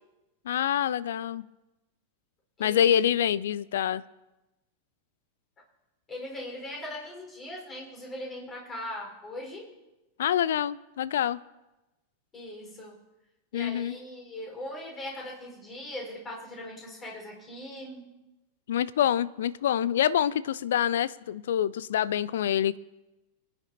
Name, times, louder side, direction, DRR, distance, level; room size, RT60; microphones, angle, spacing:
voice 1, 0.5-1.4 2.6-4.0 10.2-11.4 13.5-14.0 18.7-22.8, left 10 dB, 60° left, 19 dB, 0.4 m, -26 dB
voice 2, 2.6-3.1 6.1-9.7 12.3-13.0 13.5-18.1, left 1 dB, 20° left, -1 dB, 4.6 m, -40 dB
26.5 x 9.2 x 2.8 m, 1.0 s
figure-of-eight pair, 90°, 0 cm